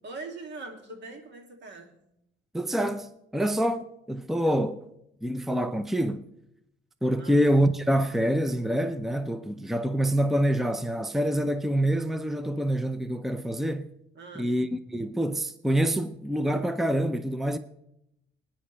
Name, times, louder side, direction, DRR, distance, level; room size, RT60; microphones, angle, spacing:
voice 1, 0.0-2.0 7.2-7.4 14.1-14.5, right 3 dB, 60° right, 2.7 m, -42 dB
voice 2, 2.5-4.8 5.2-6.3 7.0-13.9 14.4-17.6, equal, ahead, 0.6 m, -26 dB
19.0 x 10.0 x 3.4 m
cardioid pair, 90°, 20 cm